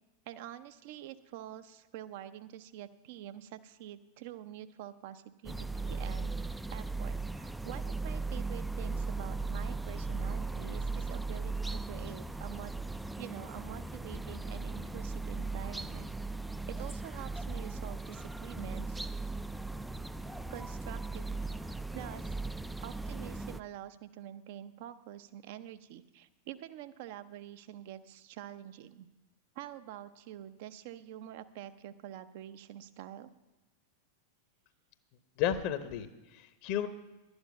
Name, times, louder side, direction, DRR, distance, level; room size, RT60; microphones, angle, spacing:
voice 1, 0.3-12.7 13.2-16.1 16.7-19.0 20.3-22.4 22.8-29.1 29.5-33.3, right 12 dB, 50° right, 12 dB, 0.6 m, -46 dB
sound 1, 5.4-23.6, right 3 dB, 5° right, 0.3 m, -38 dB
voice 2, 35.4-36.9, left 10 dB, 45° left, 11 dB, 0.9 m, -33 dB
12.0 x 9.7 x 5.3 m, 1.1 s
figure-of-eight pair, 90°, 0 cm